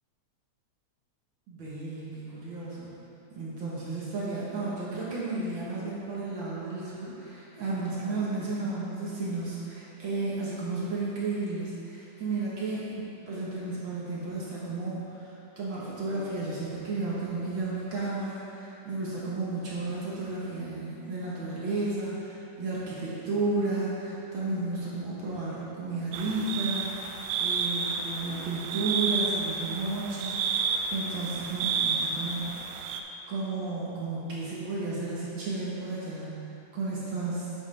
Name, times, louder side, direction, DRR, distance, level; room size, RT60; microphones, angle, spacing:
voice 1, 1.5-2.9 3.3-27.1 27.4-32.9 33.3-36.3 36.7-37.5, right 3 dB, 60° right, -7 dB, 1.3 m, -33 dB
sound 1, 26.1-33.0, right 5 dB, 80° right, 1.7 m, -31 dB
8.9 x 7.4 x 3.3 m, 2.8 s
omnidirectional pair, 3.6 m